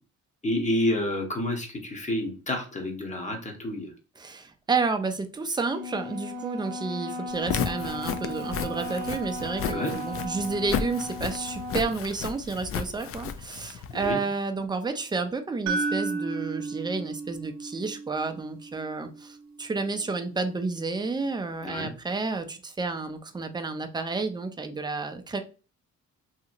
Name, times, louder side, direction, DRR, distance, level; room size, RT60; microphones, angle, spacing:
voice 1, 0.4-3.9 9.7-10.0 13.9-14.2 21.6-21.9, left 1 dB, 25° left, 2 dB, 1.0 m, -29 dB
voice 2, 4.2-25.4, right 4 dB, 15° right, 7 dB, 0.5 m, -31 dB
Wind instrument woodwind instrument, 5.7-12.0, left 1 dB, 35° right, 1.1 m, -36 dB
Walk footsteps, 7.3-14.1, left 7 dB, 50° left, 0.4 m, -33 dB
sound 1, 15.7-19.7, right 4 dB, 65° right, 0.6 m, -33 dB
2.9 x 2.7 x 2.5 m, 0.34 s
cardioid pair, 90°, 30 cm